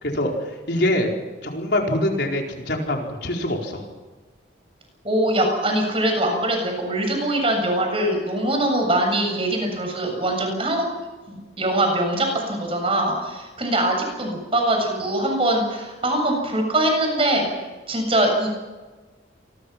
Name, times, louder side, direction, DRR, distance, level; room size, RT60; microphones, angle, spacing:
voice 1, 0.0-1.1 1.4-3.8, left 1 dB, 60° left, 1 dB, 4.6 m, -24 dB
voice 2, 5.0-10.9 11.3-17.5 17.9-18.5, right 1 dB, 30° right, 3 dB, 7.5 m, -22 dB
28.0 x 22.0 x 6.1 m, 1.3 s
head